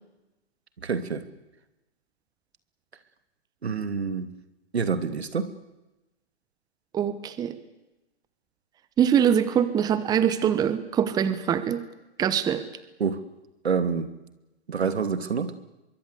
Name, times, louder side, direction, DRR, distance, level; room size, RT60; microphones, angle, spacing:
voice 1, 0.8-1.2 3.6-4.3 4.7-5.5 13.0-13.2 13.6-14.1 14.7-15.5, right 5 dB, 75° right, 12 dB, 2.8 m, -27 dB
voice 2, 6.9-7.5 9.0-11.8 12.2-12.6, right 8 dB, 10° right, 14 dB, 1.1 m, -23 dB
25.0 x 23.0 x 8.3 m, 0.98 s
hypercardioid pair, 135°, 32 cm